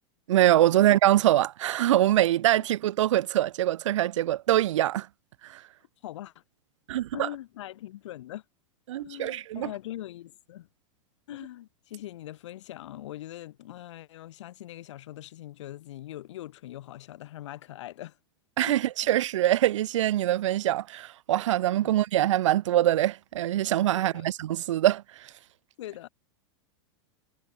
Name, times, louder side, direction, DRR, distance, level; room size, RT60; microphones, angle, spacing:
voice 1, 0.3-5.1 5.4-5.6 6.9-7.3 8.9-9.7 18.6-25.3, right 13 dB, 80° right, 0.7 m, -24 dB
voice 2, 6.0-6.4 7.1-8.4 9.0-10.7 11.3-18.2 18.7-18.8 21.8-21.9 23.9-24.3 25.8-26.1, left 14 dB, 75° left, 3.7 m, -42 dB
supercardioid pair, 130°, 15 cm